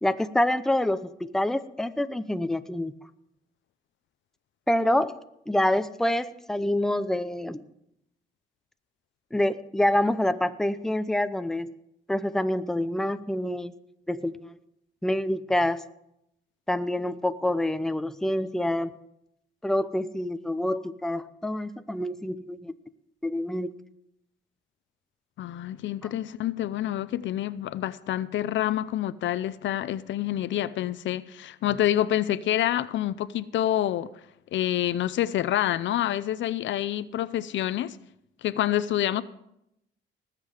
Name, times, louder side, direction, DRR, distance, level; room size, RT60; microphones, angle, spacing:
voice 1, 0.0-2.9 4.7-5.1 5.5-7.6 9.3-11.7 12.1-13.7 14.1-14.6 15.0-15.8 16.7-18.9 19.6-22.7 23.2-23.7, left 1 dB, ahead, 0.6 m, -26 dB
voice 2, 25.4-34.1 34.5-38.0 38.4-39.2, left 12 dB, 70° left, 0.6 m, -27 dB
19.5 x 7.6 x 4.9 m
cardioid pair, 90°, 20 cm